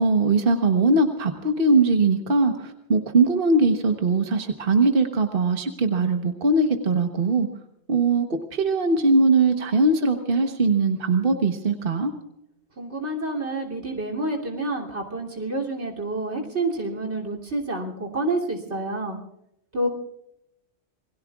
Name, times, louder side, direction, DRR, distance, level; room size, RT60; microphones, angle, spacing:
voice 1, 0.0-2.5 2.9-7.5 7.9-8.3 8.5-12.1, right 3 dB, 55° right, 5 dB, 1.4 m, -20 dB
voice 2, 12.8-19.2 19.7-19.9, right 2 dB, 90° right, 3 dB, 3.4 m, -28 dB
27.5 x 21.0 x 2.4 m, 0.83 s
omnidirectional pair, 1.1 m